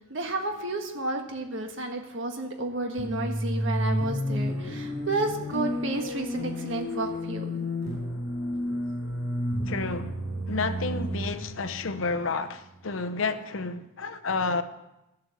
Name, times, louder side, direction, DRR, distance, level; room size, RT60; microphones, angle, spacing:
voice 1, 0.1-7.5, right 2 dB, 65° right, 1.5 m, -31 dB
sound 1, 3.0-12.9, equal, 20° right, 5.9 m, -31 dB
voice 2, 9.7-10.2 10.5-14.6, left 4 dB, 75° left, 0.8 m, -30 dB
13.5 x 7.8 x 7.2 m
head